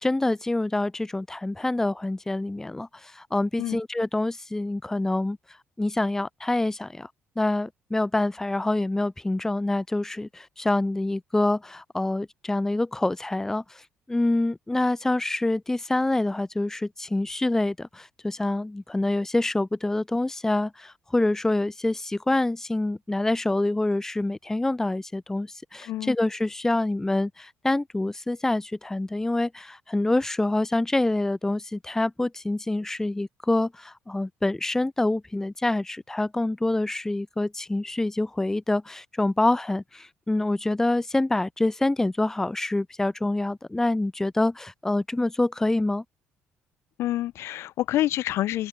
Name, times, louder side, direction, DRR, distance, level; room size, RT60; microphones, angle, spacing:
voice 1, 0.0-5.4 5.8-7.1 7.4-13.8 14.1-46.0, left 2 dB, 10° left, 1.0 m, -26 dB
voice 2, 47.0-48.7, left 14 dB, 75° left, 1.8 m, -27 dB
open air
cardioid pair, 110°, 4 cm